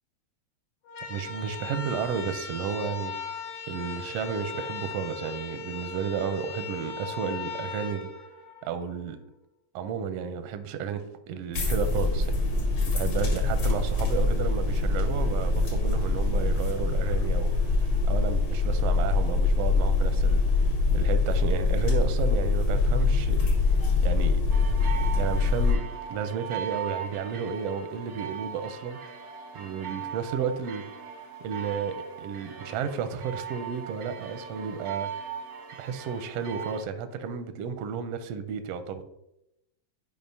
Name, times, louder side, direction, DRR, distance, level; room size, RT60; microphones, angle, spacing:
sound 1, 0.8-9.0, left 4 dB, 75° left, 2.3 m, -38 dB
voice 1, 1.1-3.2 3.7-8.1 8.6-9.2 9.7-12.5 12.9-23.5 24.0-24.4 25.2-25.8 26.1-29.0 29.5-30.8 31.4-35.1 35.8-39.0, right 7 dB, 80° right, 8 dB, 1.5 m, -32 dB
sound 2, 11.5-25.7, left 3 dB, 60° left, 2.7 m, -24 dB
sound 3, 24.5-36.8, right 7 dB, 60° right, 0.9 m, -39 dB
11.0 x 5.1 x 2.7 m, 0.85 s
omnidirectional pair, 3.3 m